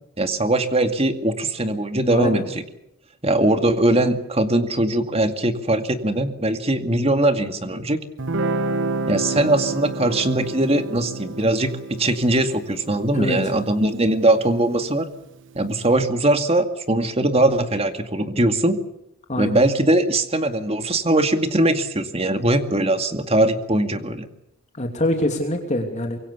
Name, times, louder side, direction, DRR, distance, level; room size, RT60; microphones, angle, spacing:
voice 1, 0.2-2.6 3.2-8.0 9.1-15.1 15.6-18.8 19.4-24.3, right 1 dB, 25° right, 8 dB, 2.2 m, -21 dB
voice 2, 2.1-2.4 13.1-13.4 19.3-19.6 24.8-26.2, left 1 dB, 30° left, 3 dB, 2.9 m, -24 dB
Guitar, 8.2-15.3, right 3 dB, 55° right, 1.3 m, -30 dB
25.5 x 23.0 x 7.1 m, 0.82 s
head